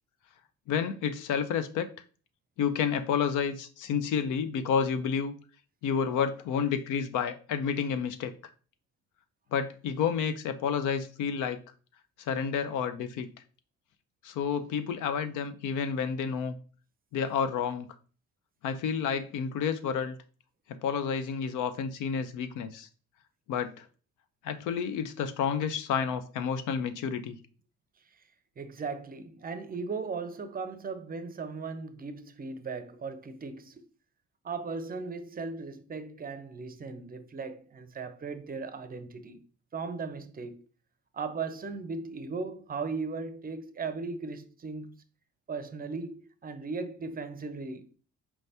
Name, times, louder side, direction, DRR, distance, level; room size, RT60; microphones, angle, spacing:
voice 1, 0.7-1.9 2.6-5.3 5.8-8.3 9.5-11.6 12.2-13.3 14.2-16.6 17.1-17.9 18.6-20.2 20.7-22.9 23.5-23.8 24.4-27.4, left 7 dB, 85° left, 0.5 m, -30 dB
voice 2, 28.6-33.8 34.4-39.4 39.7-40.6 41.1-45.0 45.5-47.9, right 4 dB, 30° right, 0.5 m, -37 dB
4.5 x 3.3 x 2.7 m
cardioid pair, 90°, 30 cm